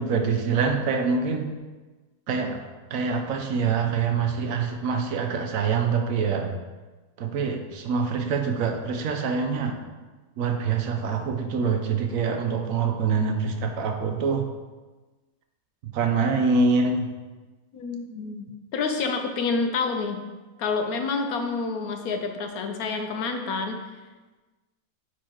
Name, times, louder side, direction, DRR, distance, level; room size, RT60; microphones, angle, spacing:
voice 1, 0.0-1.5 2.3-2.6 2.9-6.5 7.2-9.8 10.4-14.5 15.9-17.1, right 5 dB, 70° right, 4 dB, 1.1 m, -25 dB
voice 2, 17.7-20.2 20.6-23.8, left 4 dB, 85° left, 5 dB, 1.2 m, -28 dB
9.4 x 4.4 x 3.0 m, 1.2 s
omnidirectional pair, 1.5 m